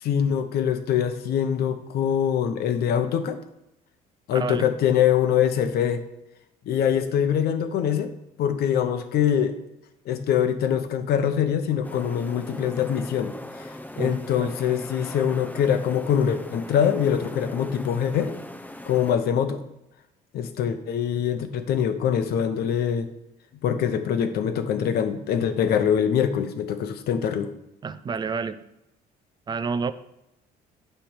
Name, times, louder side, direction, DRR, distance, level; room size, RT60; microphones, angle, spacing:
voice 1, 0.0-3.4 4.3-6.0 6.7-8.1 8.4-9.6 10.1-13.7 14.0-18.3 18.8-19.6 20.3-23.1 23.6-27.5, left 8 dB, 70° left, 9 dB, 0.8 m, -24 dB
voice 2, 4.3-4.6 14.0-14.5 27.8-28.6 29.5-29.9, right 5 dB, 25° right, 13 dB, 0.5 m, -29 dB
sound 1, 11.8-19.1, left 1 dB, 10° left, 0.8 m, -40 dB
9.1 x 3.3 x 6.5 m, 0.86 s
cardioid pair, 110°, 17 cm